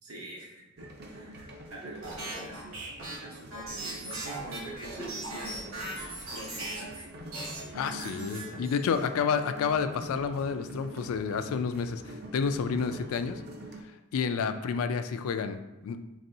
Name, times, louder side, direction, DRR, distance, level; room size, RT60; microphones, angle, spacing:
voice 1, 0.0-2.7 3.2-6.8, right 1 dB, 85° right, -2 dB, 1.0 m, -46 dB
sound 1, 0.8-13.8, right 1 dB, 45° right, 0.5 m, -45 dB
sound 2, 2.0-7.0 7.3-9.0, right 2 dB, 70° right, 1.5 m, -39 dB
voice 2, 7.7-13.4 14.1-16.0, left 6 dB, 75° left, 10 dB, 0.3 m, -30 dB
4.1 x 3.3 x 2.7 m, 1.0 s
head